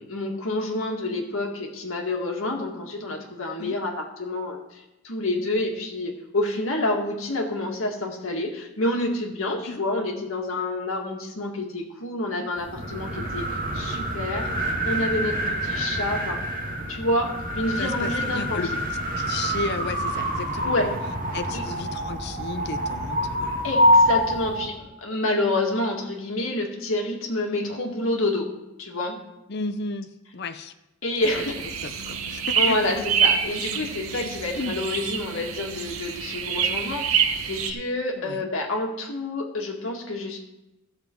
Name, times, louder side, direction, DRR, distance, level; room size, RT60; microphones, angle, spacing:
voice 1, 0.0-13.5 13.7-14.5 14.8-16.4 16.9-18.6 20.6-20.9 21.5-21.6 23.6-28.5 28.8-29.2 31.0-31.6 32.6-40.4, left 2 dB, 75° left, 0 dB, 1.9 m, -28 dB
sound 1, 12.6-24.7, equal, 40° right, 2.0 m, -26 dB
voice 2, 17.8-18.7 19.2-21.0 21.3-23.6 29.5-30.7 31.4-31.5 31.8-33.0 34.5-34.8 38.2-38.5, left 3 dB, 50° left, 8 dB, 0.5 m, -34 dB
sound 2, 31.2-37.7, right 7 dB, 90° right, 0.9 m, -27 dB
14.0 x 7.0 x 4.5 m, 0.93 s
head